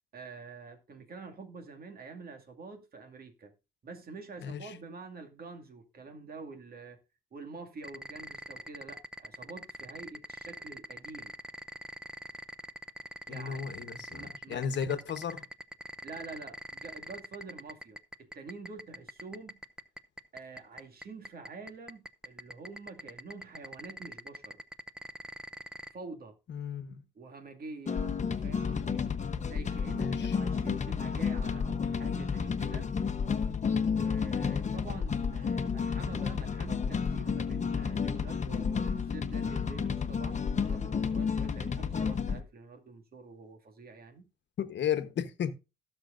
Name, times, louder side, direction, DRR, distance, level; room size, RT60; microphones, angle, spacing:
voice 1, 0.1-3.5 3.8-7.0 7.3-11.3 13.3-13.8 14.1-14.7 16.0-19.6 20.3-24.6 25.9-26.4 27.1-29.1 29.5-32.9 33.9-44.3, right 4 dB, 50° right, 2.2 m, -47 dB
sound 1, 7.8-25.9, equal, 5° right, 0.7 m, -42 dB
voice 2, 13.3-15.4 26.5-27.0 29.9-30.3 44.6-45.5, left 8 dB, 65° left, 1.2 m, -34 dB
sound 2, 27.9-42.4, left 6 dB, 35° left, 1.0 m, -31 dB
17.5 x 6.3 x 2.6 m
cardioid pair, 90°, 20 cm